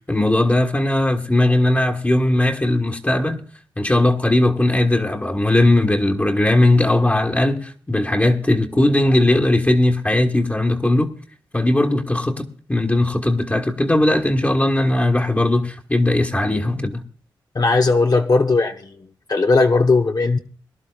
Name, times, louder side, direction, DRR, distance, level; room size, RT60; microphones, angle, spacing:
voice 1, 0.1-3.4 3.8-11.1 11.5-17.0, left 1 dB, 20° left, 1.6 m, -18 dB
voice 2, 17.5-19.0 19.3-20.4, left 3 dB, 45° left, 1.0 m, -17 dB
22.5 x 11.5 x 2.4 m
cardioid pair, 50°, 9 cm